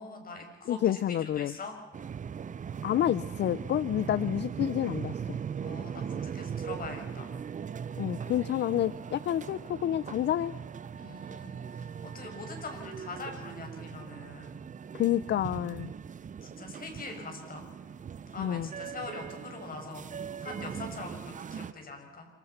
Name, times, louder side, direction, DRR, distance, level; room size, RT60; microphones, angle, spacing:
voice 1, 0.0-1.7 4.1-4.3 5.6-7.3 10.9-14.6 16.4-17.6 18.3-22.3, left 3 dB, 45° left, 3 dB, 6.7 m, -43 dB
voice 2, 0.7-1.5 2.8-5.4 8.0-10.6 14.9-15.9 18.4-18.7, left 11 dB, 60° left, 18 dB, 0.6 m, -29 dB
sound 1, 1.9-21.7, right 7 dB, 40° right, 0.8 m, -39 dB
27.0 x 24.5 x 5.9 m, 1.3 s
cardioid pair, 90°, 20 cm